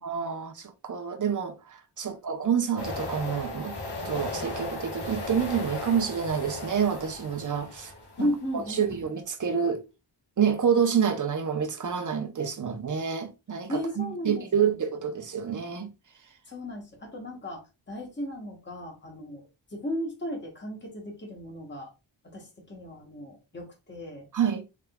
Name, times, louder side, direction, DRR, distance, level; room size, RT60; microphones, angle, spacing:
voice 1, 0.0-3.7 4.0-7.9 8.2-8.3 8.5-9.8 10.4-15.9 24.3-24.6, right 7 dB, 40° right, 0.7 m, -28 dB
sound 1, 2.8-8.5, left 2 dB, 55° left, 1.3 m, -37 dB
voice 2, 8.2-8.9 13.7-14.8 16.5-17.6 17.9-19.4 19.7-21.9 22.3-24.2, equal, 20° left, 1.2 m, -35 dB
3.5 x 3.2 x 2.3 m
cardioid pair, 70°, 49 cm